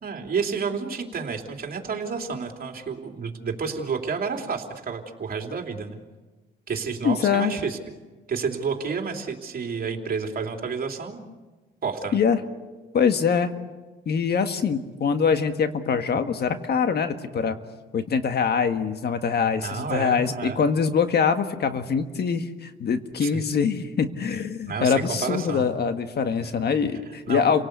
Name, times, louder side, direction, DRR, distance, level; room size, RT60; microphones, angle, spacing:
voice 1, 0.0-6.0 6.7-7.8 8.3-11.2 11.8-12.2 19.6-20.6 23.2-23.3 24.7-25.7 27.3-27.4, right 5 dB, 45° right, 3 dB, 3.2 m, -30 dB
voice 2, 7.0-7.5 12.1-12.4 12.9-13.5 14.0-17.6 17.9-27.7, left 6 dB, 55° left, 8 dB, 1.7 m, -24 dB
29.5 x 18.5 x 8.2 m, 1.3 s
cardioid pair, 90°, 20 cm